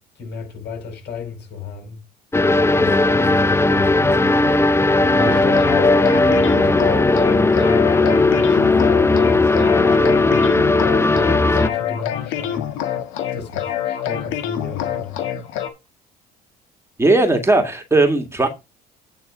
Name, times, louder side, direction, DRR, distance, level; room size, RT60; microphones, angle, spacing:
voice 1, 0.1-2.0 2.8-4.6 5.1-6.7 7.0-10.5 11.5-12.7 13.3-15.2, left 5 dB, 60° left, 5.3 m, -33 dB
sound 1, 2.3-11.7, left 2 dB, 10° left, 0.7 m, -16 dB
sound 2, 5.2-15.7, left 10 dB, 75° left, 1.4 m, -26 dB
voice 2, 17.0-18.5, right 2 dB, 15° right, 2.1 m, -17 dB
9.1 x 4.1 x 6.0 m
supercardioid pair, 70°, 20 cm